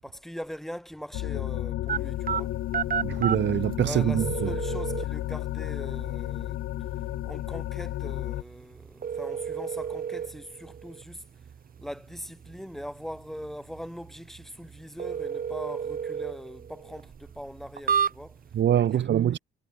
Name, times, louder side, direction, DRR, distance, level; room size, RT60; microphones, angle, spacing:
voice 1, 0.0-2.5 3.8-6.6 7.2-11.2 11.8-18.4 18.9-19.4, equal, ahead, 7.2 m, -41 dB
sound 1, 1.1-8.4, left 15 dB, 85° left, 1.4 m, -32 dB
sound 2, 1.9-18.6, right 7 dB, 45° right, 1.7 m, -34 dB
voice 2, 3.0-4.6 18.5-19.4, right 10 dB, 65° right, 1.8 m, -24 dB
cardioid pair, 90°, 20 cm